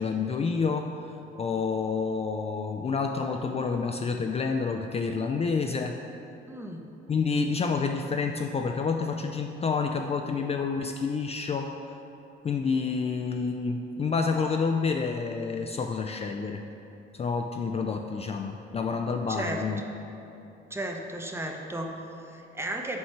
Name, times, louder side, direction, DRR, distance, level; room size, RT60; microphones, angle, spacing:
voice 1, 0.0-6.0 7.1-11.7 12.4-16.6 17.1-19.8, left 5 dB, 30° left, 4 dB, 0.3 m, -29 dB
voice 2, 6.5-6.9 19.3-19.6 20.7-23.0, right 1 dB, 10° right, 2 dB, 0.7 m, -35 dB
7.3 x 4.5 x 4.5 m, 2.8 s
cardioid pair, 90°, 20 cm